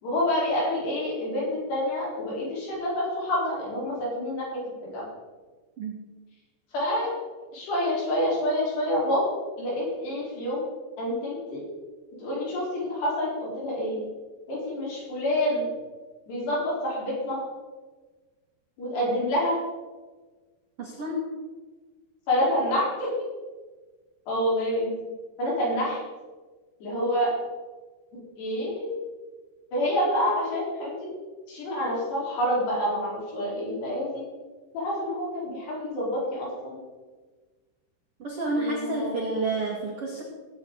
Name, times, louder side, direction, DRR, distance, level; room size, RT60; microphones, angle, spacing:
voice 1, 0.0-4.6 4.9-5.0 6.7-7.1 7.5-9.3 9.6-10.7 11.0-11.6 12.2-14.0 14.5-15.7 16.3-17.4 18.8-19.6 22.3-23.1 24.3-24.9 25.4-26.0 26.8-27.4 28.4-28.9 29.7-31.1 31.5-34.2 34.7-36.8 38.6-39.5, left 1 dB, 65° left, -5 dB, 6.2 m, -27 dB
voice 2, 20.8-21.2 38.2-40.2, right 2 dB, 55° right, -2 dB, 1.6 m, -29 dB
19.0 x 8.6 x 4.0 m, 1.3 s
omnidirectional pair, 5.3 m